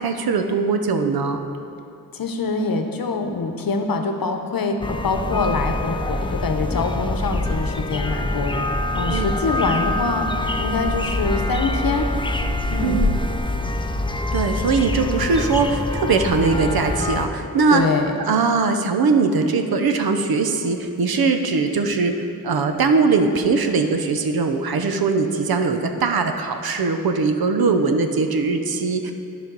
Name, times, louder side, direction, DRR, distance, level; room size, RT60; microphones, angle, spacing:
voice 1, 0.0-1.4 9.1-9.3 12.8-13.1 14.3-17.8 18.3-22.1 22.4-29.1, right 4 dB, 75° right, 6 dB, 0.7 m, -21 dB
voice 2, 2.1-8.6 8.9-10.3 10.6-12.1 12.7-13.0 17.7-18.1, left 4 dB, 70° left, 5 dB, 0.9 m, -24 dB
sound 1, 4.8-17.3, left 2 dB, 15° left, 0.5 m, -25 dB
13.5 x 5.1 x 4.0 m, 2.7 s
wide cardioid pair, 75°, 36 cm